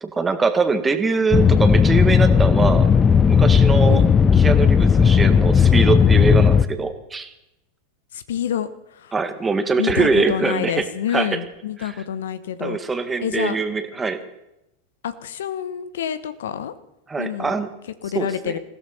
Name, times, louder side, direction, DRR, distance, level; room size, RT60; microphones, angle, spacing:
voice 1, 0.0-2.9 3.3-4.0 4.3-7.3 9.1-10.8 11.1-11.4 11.8-11.9 12.6-14.2 17.1-17.7 18.1-18.6, right 4 dB, 15° right, 9 dB, 1.7 m, -23 dB
sound 1, 1.3-6.6, left 6 dB, 25° left, 0.7 m, -15 dB
voice 2, 8.1-9.1 9.8-12.8 13.2-13.6 15.0-16.7 17.2-17.6 18.0-18.6, left 9 dB, 70° left, 14 dB, 1.1 m, -27 dB
21.0 x 15.5 x 4.3 m, 0.87 s
hypercardioid pair, 90°, 0 cm